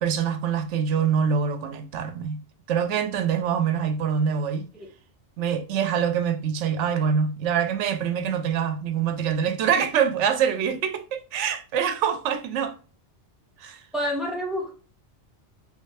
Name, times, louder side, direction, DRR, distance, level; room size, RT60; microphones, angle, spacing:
voice 1, 0.0-2.4 2.7-4.7 5.4-12.8 13.6-13.8, right 7 dB, 85° right, 0.9 m, -25 dB
voice 2, 13.9-14.7, equal, ahead, 1.2 m, -28 dB
3.5 x 3.2 x 3.2 m
omnidirectional pair, 1.2 m